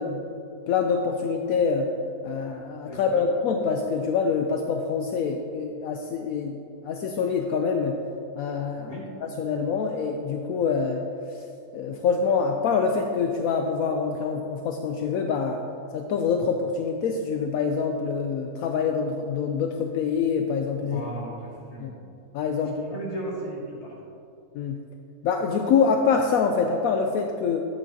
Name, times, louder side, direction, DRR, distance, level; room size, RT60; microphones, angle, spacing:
voice 1, 0.0-1.9 2.2-6.6 6.8-8.0 8.4-11.0 11.3-11.4 11.7-15.6 15.9-21.0 21.8-21.9 22.3-23.0 24.5-24.8 25.2-27.6, left 5 dB, 75° left, 3 dB, 1.0 m, -25 dB
voice 2, 2.9-3.2 8.7-9.1 20.8-21.9 22.6-23.9, right 1 dB, 25° left, -5 dB, 2.0 m, -36 dB
11.5 x 8.6 x 2.8 m, 2.7 s
omnidirectional pair, 1.6 m